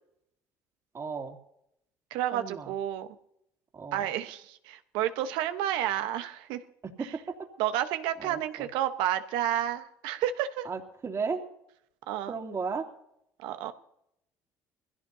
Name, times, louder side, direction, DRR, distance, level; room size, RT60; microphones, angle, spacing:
voice 1, 0.9-1.4 2.3-2.7 3.7-4.1 6.8-7.3 8.2-8.7 10.6-11.4 12.3-12.8, right 5 dB, 35° right, 3 dB, 2.7 m, -35 dB
voice 2, 2.1-3.1 3.9-6.6 7.6-10.7 12.1-12.3 13.4-13.7, right 11 dB, 75° right, 9 dB, 1.1 m, -30 dB
22.0 x 16.0 x 2.8 m, 0.77 s
supercardioid pair, 70°, 8 cm